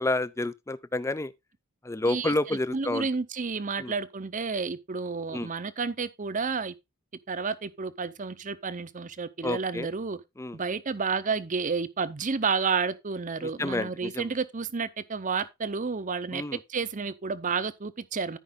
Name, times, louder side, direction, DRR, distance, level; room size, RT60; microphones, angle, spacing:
voice 1, 0.0-1.3 1.8-3.1 3.8-3.9 5.3-5.5 9.4-9.9 10.4-10.6 13.6-14.2 16.3-16.6, left 2 dB, 15° left, 0.4 m, -29 dB
voice 2, 2.1-6.7 7.3-10.2 10.5-18.4, right 5 dB, 35° right, 0.7 m, -31 dB
13.0 x 5.4 x 3.8 m
head